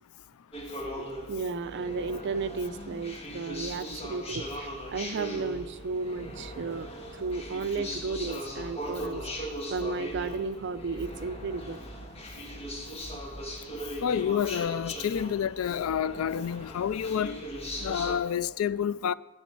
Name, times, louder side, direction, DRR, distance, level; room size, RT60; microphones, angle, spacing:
sound 1, 0.5-18.2, equal, 30° left, 1.5 m, -39 dB
voice 1, 1.0-11.9, right 4 dB, 55° right, 0.5 m, -34 dB
voice 2, 14.0-17.4 17.8-19.1, left 8 dB, 70° left, 0.3 m, -29 dB
10.5 x 5.3 x 8.4 m
head